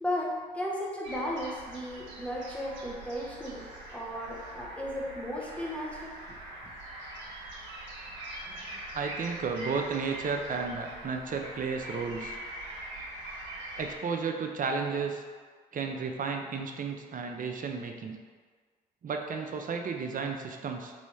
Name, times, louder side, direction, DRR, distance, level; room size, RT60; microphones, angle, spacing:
voice 1, 0.0-3.6 3.9-6.4, left 1 dB, 5° left, -4 dB, 1.0 m, -35 dB
sound 1, 1.0-13.9, right 1 dB, 70° right, 1.0 m, -43 dB
voice 2, 8.4-12.4 13.8-15.2 15.7-18.2 19.0-20.9, right 5 dB, 45° right, 4 dB, 0.5 m, -33 dB
3.1 x 2.7 x 4.2 m, 1.5 s
hypercardioid pair, 45°, 20 cm